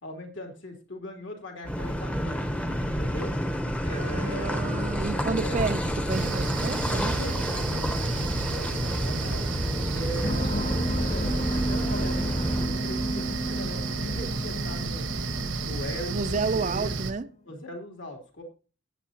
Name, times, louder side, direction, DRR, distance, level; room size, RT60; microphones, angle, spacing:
voice 1, 0.0-2.4 2.8-3.3 3.8-4.5 4.9-5.6 7.1-9.5 9.9-15.1 15.6-16.9 17.4-18.4, equal, 70° left, 3.3 m, -40 dB
Car passing by / Idling / Accelerating revving vroom, 1.6-12.7, equal, 5° left, 0.8 m, -29 dB
voice 2, 3.9-7.2 10.2-10.7 16.1-17.3, right 4 dB, 40° right, 0.5 m, -31 dB
sound 1, 6.1-17.1, right 3 dB, 80° right, 1.1 m, -32 dB
sound 2, 10.2-17.3, right 1 dB, 35° left, 1.6 m, -33 dB
16.5 x 9.1 x 2.9 m
head